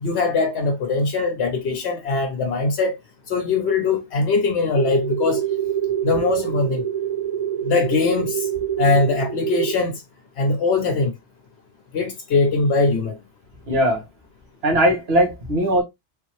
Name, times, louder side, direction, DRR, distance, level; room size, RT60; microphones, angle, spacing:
voice 1, 0.0-3.0 3.3-5.5 6.0-6.8 7.6-8.5 8.8-10.0 10.4-11.1 11.9-13.2, left 3 dB, 70° left, 0.9 m, -21 dB
sound 1, 4.7-9.7, right 9 dB, 35° right, 0.8 m, -26 dB
voice 2, 13.7-14.0 14.6-15.8, equal, 65° right, 1.6 m, -19 dB
3.8 x 2.7 x 2.9 m
omnidirectional pair, 1.2 m